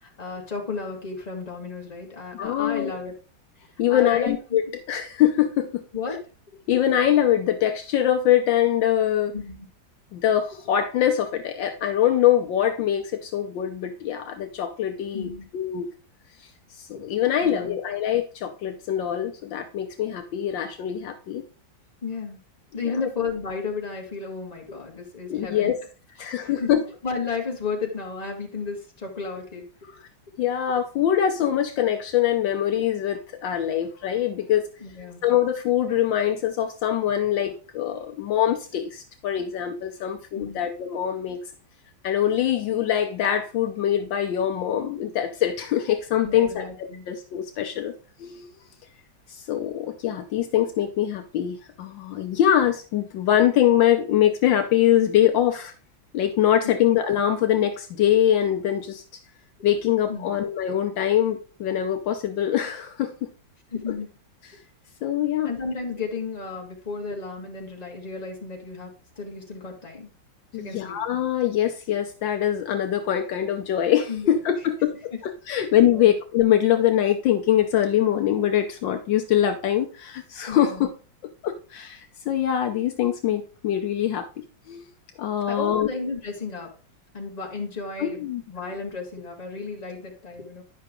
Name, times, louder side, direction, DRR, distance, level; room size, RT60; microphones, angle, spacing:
voice 1, 0.0-3.1 3.9-4.6 5.9-6.2 9.3-9.7 15.1-15.5 17.4-17.8 22.0-22.4 22.7-25.7 26.2-26.7 27.0-29.6 34.8-35.2 40.4-40.6 46.2-47.1 56.6-56.7 59.6-59.7 60.1-60.3 63.7-64.1 65.5-70.1 70.5-71.0 74.1-74.4 75.5-76.1 80.5-80.8 85.5-86.7 87.1-90.6, left 4 dB, 20° left, 0 dB, 1.8 m, -33 dB
voice 2, 2.3-3.0 3.8-4.6 4.9-5.8 6.7-9.3 10.1-15.9 16.7-21.4 22.8-22.9 25.3-25.8 26.2-26.8 30.4-34.7 35.2-41.4 42.0-47.9 48.2-48.5 49.3-55.7 56.1-59.0 59.6-63.1 65.0-65.5 70.5-80.9 81.4-84.9 85.2-85.9 88.0-88.4, left 11 dB, 75° left, 6 dB, 1.4 m, -23 dB
10.0 x 5.6 x 3.7 m, 0.36 s
omnidirectional pair, 2.1 m